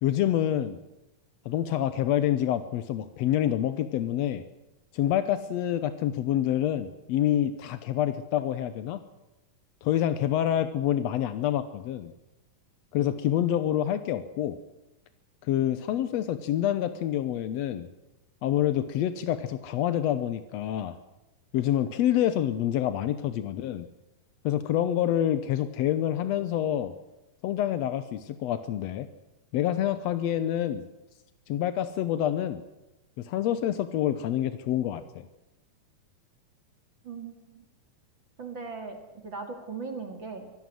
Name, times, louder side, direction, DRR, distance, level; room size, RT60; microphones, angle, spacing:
voice 1, 0.0-0.8 1.4-4.4 4.9-9.0 9.8-12.1 12.9-14.6 15.4-17.9 18.4-21.0 21.5-23.9 24.4-26.9 27.4-29.1 29.5-30.8 31.5-32.6 33.2-35.3, left 11 dB, 75° left, 12 dB, 1.6 m, -27 dB
voice 2, 37.0-37.6 38.4-40.5, right 4 dB, 40° right, 5 dB, 2.7 m, -39 dB
24.0 x 16.5 x 7.8 m, 0.99 s
omnidirectional pair, 4.0 m